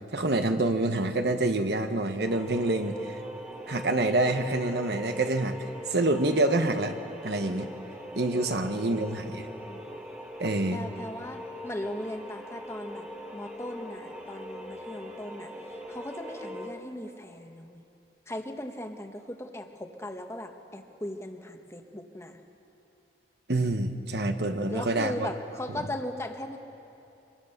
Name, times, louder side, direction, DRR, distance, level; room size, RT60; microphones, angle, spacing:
voice 1, 0.1-3.2 3.7-5.5 5.9-6.9 7.2-7.7 8.1-9.5 10.4-10.8 23.5-25.3, right 2 dB, 65° right, 7 dB, 1.2 m, -27 dB
sound 1, 2.2-16.7, equal, 10° right, 2.0 m, -41 dB
voice 2, 8.6-9.8 10.7-15.5 15.9-17.8 18.3-22.4 24.6-26.6, left 1 dB, 15° left, 4 dB, 1.3 m, -38 dB
25.0 x 22.5 x 6.7 m, 2.8 s
head